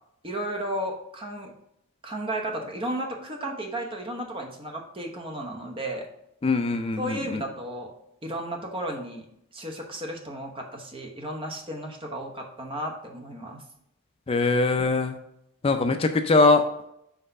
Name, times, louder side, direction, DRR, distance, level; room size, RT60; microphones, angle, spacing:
voice 1, 0.2-1.5 2.0-6.1 7.0-7.9 8.2-9.3 9.5-13.6, right 1 dB, 25° right, 2 dB, 0.9 m, -34 dB
voice 2, 6.4-7.4 14.3-15.2 15.6-16.6, left 3 dB, 25° left, 7 dB, 0.4 m, -22 dB
5.9 x 3.2 x 5.4 m, 0.76 s
head